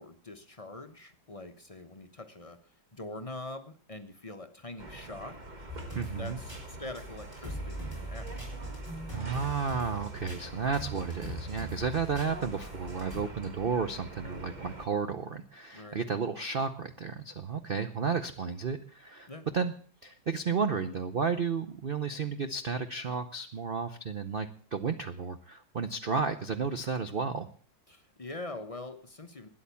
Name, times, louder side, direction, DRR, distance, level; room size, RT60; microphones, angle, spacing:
voice 1, 0.0-2.6 2.9-5.4 6.1-8.4 15.7-16.1 19.3-19.5 27.9-29.5, left 2 dB, 30° left, 7 dB, 0.7 m, -43 dB
sound 1, 4.8-14.9, right 1 dB, 25° right, 1.4 m, -46 dB
sound 2, 5.7-13.2, right 1 dB, 10° right, 5.8 m, -41 dB
voice 2, 5.9-6.4 9.1-19.7 20.0-27.5, right 5 dB, 55° right, 9 dB, 0.6 m, -32 dB
13.0 x 9.9 x 6.9 m, 0.44 s
omnidirectional pair, 2.0 m